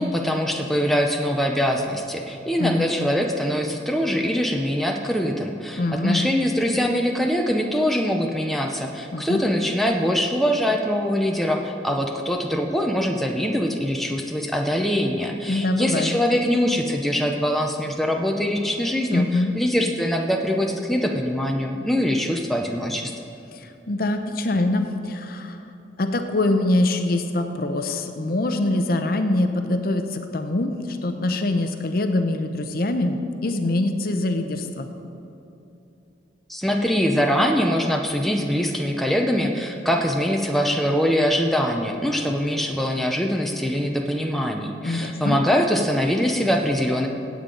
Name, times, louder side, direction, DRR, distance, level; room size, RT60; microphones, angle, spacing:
voice 1, 0.0-23.1 36.5-47.1, equal, ahead, 1 dB, 0.6 m, -23 dB
voice 2, 2.6-2.9 5.8-6.2 9.1-9.4 15.5-16.2 19.1-19.5 23.5-25.6 26.0-34.9 44.8-45.4, left 2 dB, 50° left, 6 dB, 0.7 m, -24 dB
16.5 x 8.4 x 3.9 m, 2.9 s
head